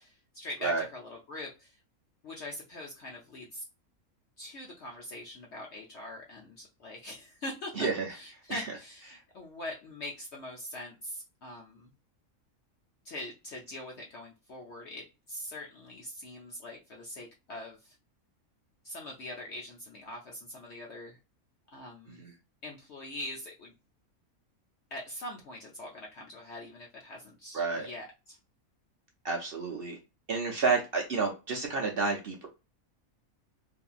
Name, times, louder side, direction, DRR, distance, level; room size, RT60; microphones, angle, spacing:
voice 1, 0.0-1.8 2.2-3.7 4.4-11.9 13.0-18.0 18.8-21.2 21.7-22.2 22.6-23.7 24.9-28.4, left 1 dB, 60° left, -1 dB, 0.8 m, -43 dB
voice 2, 7.8-8.1 8.5-8.6 9.1-9.2 22.2-22.3 27.5-27.9 29.2-30.0 30.3-32.5, right 4 dB, 60° right, 0 dB, 0.6 m, -30 dB
2.7 x 2.6 x 2.3 m, 0.29 s
omnidirectional pair, 1.5 m